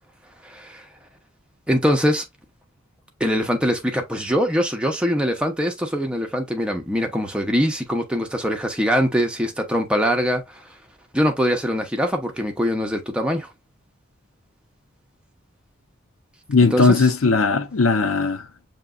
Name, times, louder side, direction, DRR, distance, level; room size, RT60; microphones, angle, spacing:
voice 1, 0.4-0.8 1.7-2.2 3.2-10.4 11.1-13.5 16.7-17.1, equal, 5° right, 0.8 m, -22 dB
voice 2, 16.5-18.7, left 4 dB, 80° left, 0.6 m, -18 dB
6.5 x 2.9 x 2.3 m
head